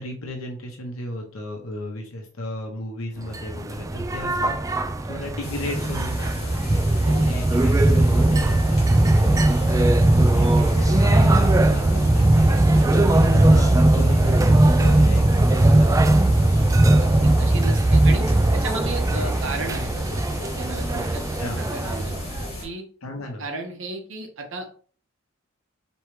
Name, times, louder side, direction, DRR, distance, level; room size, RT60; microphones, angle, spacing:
voice 1, 0.0-4.5 5.1-16.8 17.1-17.7 21.4-21.6 23.0-23.4, left 1 dB, 75° left, 1 dB, 0.9 m, -35 dB
sound 1, 3.3-22.5, right 1 dB, 15° right, 0.3 m, -19 dB
sound 2, 5.4-22.7, left 1 dB, 35° left, 1.8 m, -35 dB
voice 2, 12.9-13.3 17.0-21.2 21.6-22.2 22.6-22.8 23.4-24.8, right 2 dB, 65° right, 3 dB, 1.1 m, -34 dB
4.5 x 3.1 x 3.1 m, 0.43 s
head